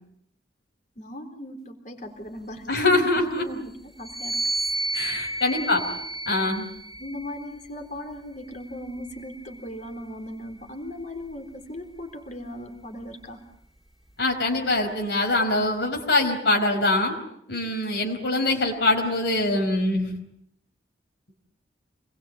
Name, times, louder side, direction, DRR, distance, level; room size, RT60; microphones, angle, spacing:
voice 1, 1.0-2.8 3.1-4.4 5.6-6.0 7.0-13.4, left 1 dB, 45° left, 6 dB, 3.9 m, -38 dB
voice 2, 2.7-3.5 4.9-5.8 6.3-6.7 14.2-17.1 17.5-20.1, left 2 dB, 70° left, 1 dB, 4.7 m, -23 dB
sound 1, 4.0-7.6 8.4-10.0, right 2 dB, ahead, 2.3 m, -32 dB
27.0 x 21.0 x 8.6 m, 0.75 s
head